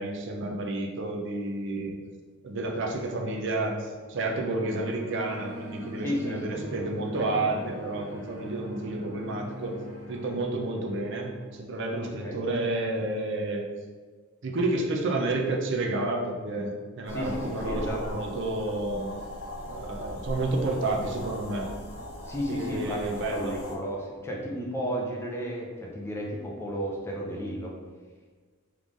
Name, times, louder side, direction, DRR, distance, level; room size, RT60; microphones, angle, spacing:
voice 1, 0.0-2.0 2.4-9.8 10.1-13.6 14.4-19.1 19.7-21.7 22.5-23.6, right 2 dB, 55° right, 1 dB, 0.6 m, -30 dB
sound 1, 3.0-11.6, right 1 dB, 75° right, 1.1 m, -42 dB
voice 2, 6.0-6.8 12.2-12.4 17.1-18.2 22.2-23.0 23.3-27.7, equal, 10° left, -2 dB, 0.6 m, -33 dB
sound 2, 17.1-23.8, left 1 dB, 60° left, 0.7 m, -39 dB
3.6 x 3.2 x 3.8 m, 1.5 s
head